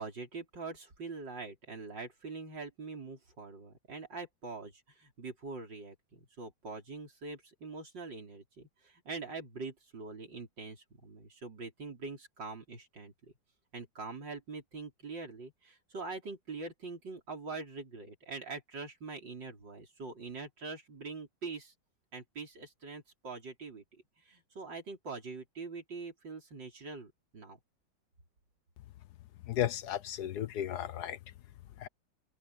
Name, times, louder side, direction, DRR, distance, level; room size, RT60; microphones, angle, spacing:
voice 1, 0.0-13.3 13.7-21.7 22.1-23.8 24.2-27.6, right 4 dB, 65° right, 5.2 m, -44 dB
voice 2, 29.5-31.2 31.8-31.9, left 11 dB, 65° left, 1.2 m, -34 dB
omnidirectional pair, 2.1 m